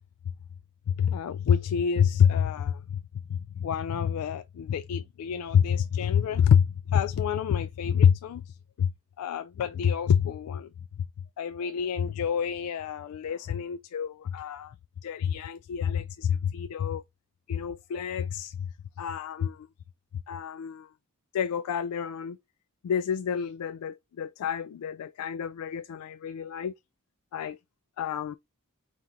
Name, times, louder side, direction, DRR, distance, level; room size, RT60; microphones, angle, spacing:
voice 1, 0.9-3.0 3.3-8.4 8.8-8.9 9.2-10.7 11.4-14.7 15.0-17.0 17.5-18.7 19.0-19.6 20.3-20.9 21.3-22.4 22.8-26.7 27.3-27.6 28.0-28.3, left 8 dB, 80° left, 0.3 m, -27 dB
3.7 x 2.9 x 3.5 m
head